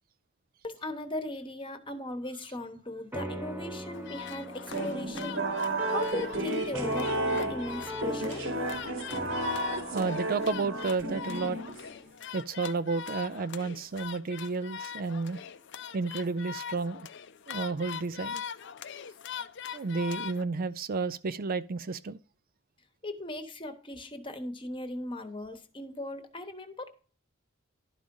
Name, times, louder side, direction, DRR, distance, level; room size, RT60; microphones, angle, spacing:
voice 1, 0.6-5.4 5.9-8.4 23.0-26.9, left 1 dB, 25° left, 1.1 m, -38 dB
sound 1, 3.1-11.8, equal, 10° right, 0.7 m, -41 dB
sound 2, 3.9-20.4, left 8 dB, 60° left, 0.5 m, -42 dB
sound 3, 4.7-12.1, right 2 dB, 70° right, 1.3 m, -33 dB
voice 2, 9.9-11.8 12.3-15.4 15.9-17.1 17.5-18.4 19.7-22.2, right 4 dB, 45° right, 0.4 m, -32 dB
11.5 x 5.0 x 5.3 m
head